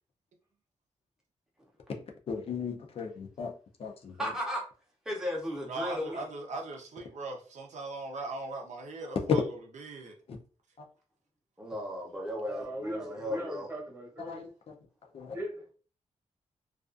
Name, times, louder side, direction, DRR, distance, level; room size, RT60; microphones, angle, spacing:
voice 1, 2.3-3.5 3.8-4.3 10.8-10.9 14.2-14.7 15.0-15.4, left 6 dB, 50° left, 0.4 m, -39 dB
voice 2, 4.2-4.6 5.1-6.2 11.6-13.7, left 1 dB, 5° right, 0.6 m, -35 dB
voice 3, 5.6-9.4 9.7-10.2, right 2 dB, 70° right, 0.5 m, -39 dB
voice 4, 12.4-14.4 15.3-15.5, right 1 dB, 20° right, 1.0 m, -39 dB
2.3 x 2.3 x 2.4 m
wide cardioid pair, 180°, 13 cm